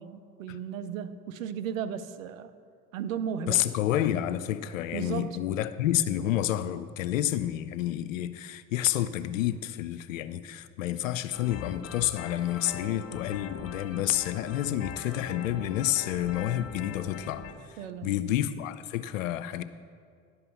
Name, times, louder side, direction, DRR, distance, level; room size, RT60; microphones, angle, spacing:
voice 1, 0.0-2.5 2.9-3.7 4.9-5.4 17.8-18.1, right 8 dB, 85° right, 12 dB, 0.6 m, -35 dB
voice 2, 3.5-17.4 18.0-19.6, left 12 dB, 85° left, 13 dB, 0.5 m, -29 dB
sound 1, 11.3-17.5, left 6 dB, 40° left, 1.5 m, -41 dB
11.0 x 5.5 x 6.9 m, 2.1 s
hypercardioid pair, 65°, 38 cm